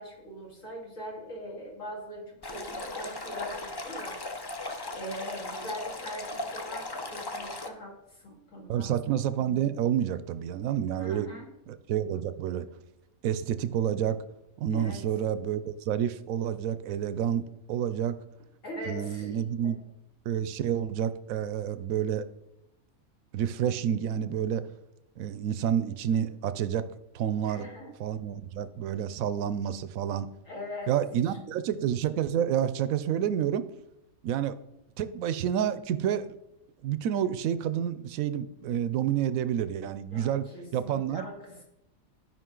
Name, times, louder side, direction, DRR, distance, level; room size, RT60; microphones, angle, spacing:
voice 1, 0.0-4.2 4.9-8.9 11.0-11.4 14.7-15.0 18.6-19.7 27.4-27.9 30.4-30.9 31.2-31.4 40.1-41.6, equal, 65° left, -2 dB, 2.6 m, -41 dB
Stream, 2.4-7.7, left 2 dB, 35° left, 0.4 m, -37 dB
voice 2, 8.7-11.3 11.7-12.6 13.2-14.2 14.6-18.2 18.8-19.8 20.3-22.2 23.3-24.6 25.2-26.9 27.1-27.7 28.0-30.3 30.9-33.6 34.2-34.6 35.0-36.4 36.8-41.3, right 9 dB, 75° right, 13 dB, 1.0 m, -29 dB
12.5 x 5.2 x 3.8 m, 0.88 s
omnidirectional pair, 1.5 m